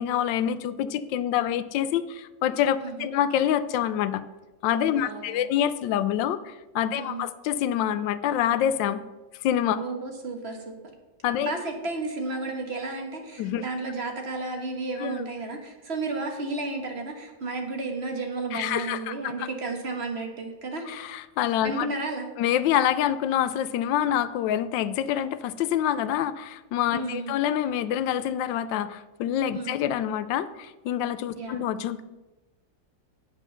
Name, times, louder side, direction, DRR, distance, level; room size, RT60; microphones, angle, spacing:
voice 1, 0.0-4.2 4.6-9.0 9.4-9.8 11.2-11.5 13.4-13.6 15.0-15.3 18.5-19.5 20.9-21.9 22.4-32.0, left 10 dB, 80° left, 14 dB, 1.3 m, -26 dB
voice 2, 4.9-5.5 6.9-7.2 9.7-10.7 11.4-20.9 21.6-22.3 26.9-27.4 29.5-29.8 31.4-31.7, right 3 dB, 40° right, 3 dB, 1.4 m, -33 dB
8.4 x 6.6 x 6.5 m, 1.1 s
omnidirectional pair, 2.0 m